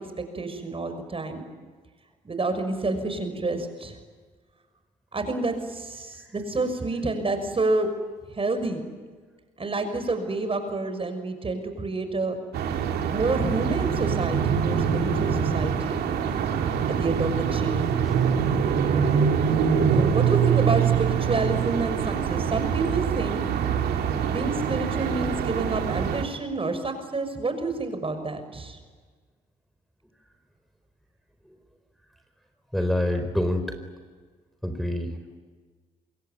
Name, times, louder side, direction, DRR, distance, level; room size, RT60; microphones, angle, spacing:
voice 1, 0.0-1.4 2.2-4.0 5.1-7.9 8.3-8.8 9.6-12.4 13.1-16.0 16.9-18.0 19.9-23.4 24.2-28.8, right 3 dB, 35° right, 8 dB, 6.1 m, -29 dB
sound 1, 12.5-26.3, right 7 dB, 75° right, 2.9 m, -24 dB
voice 2, 32.7-33.8 34.6-35.4, left 1 dB, ahead, 5 dB, 4.2 m, -27 dB
26.0 x 22.0 x 9.5 m, 1.5 s
supercardioid pair, 55°, 17 cm